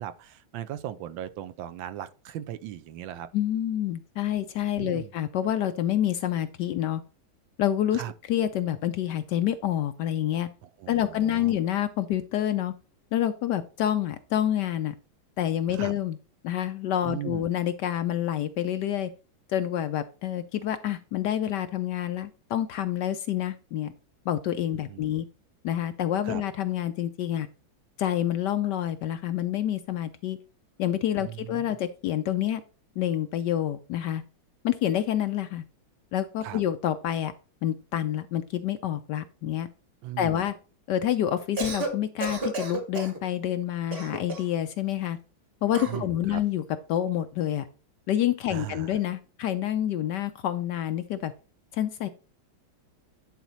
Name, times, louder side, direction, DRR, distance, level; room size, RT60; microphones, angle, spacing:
voice 1, 0.0-3.3 4.8-5.1 7.9-8.1 10.8-11.6 15.7-15.9 17.0-17.5 24.7-25.2 26.2-26.4 31.2-31.7 36.4-36.6 40.0-40.4 45.9-46.4 48.5-49.0, right 12 dB, 75° right, 1.3 m, -38 dB
voice 2, 3.3-7.0 7.6-8.0 8.3-10.5 10.9-12.7 13.1-14.9 15.4-16.2 16.4-19.1 19.5-23.9 24.3-25.2 25.6-27.5 28.0-30.4 30.8-32.6 33.0-34.2 34.6-35.6 36.1-37.3 37.6-39.7 40.2-40.5 40.9-45.2 45.6-46.6 46.9-47.7 48.1-51.3 51.7-52.1, left 11 dB, 75° left, 1.0 m, -28 dB
Cough, 41.4-41.9 42.2-43.2 43.9-44.6 45.7-46.1, right 3 dB, 30° right, 1.5 m, -32 dB
10.5 x 4.3 x 4.0 m
omnidirectional pair, 2.2 m